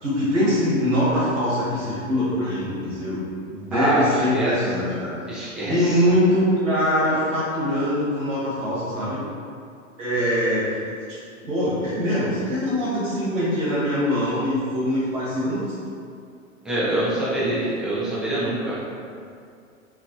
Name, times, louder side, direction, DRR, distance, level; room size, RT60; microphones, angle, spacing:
voice 1, 0.0-3.2 3.5-5.1 5.7-9.2 10.0-10.8 11.1-11.2 11.4-15.7 17.4-17.7, equal, 60° right, -9 dB, 1.2 m, -23 dB
voice 2, 3.7-4.5 5.3-6.0 16.6-18.8, right 1 dB, ahead, -11 dB, 0.4 m, -25 dB
2.9 x 2.5 x 2.6 m, 2.4 s
figure-of-eight pair, 105°, 41 cm